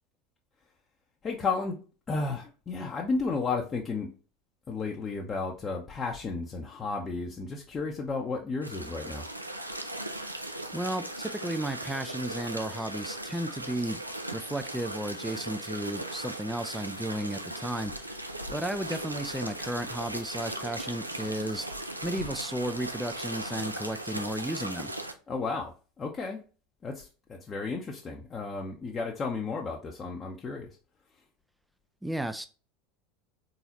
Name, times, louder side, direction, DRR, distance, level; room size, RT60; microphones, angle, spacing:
voice 1, 1.2-1.8 2.1-4.1 4.7-9.2 25.3-26.4 26.8-30.7, left 4 dB, 25° left, 0.7 m, -33 dB
sound 1, 8.6-25.1, right 1 dB, 90° right, 0.4 m, -38 dB
voice 2, 10.7-14.0 14.3-21.7 22.0-24.9 32.0-32.5, right 1 dB, 5° right, 0.4 m, -34 dB
3.9 x 3.9 x 2.9 m
figure-of-eight pair, 75°, 0 cm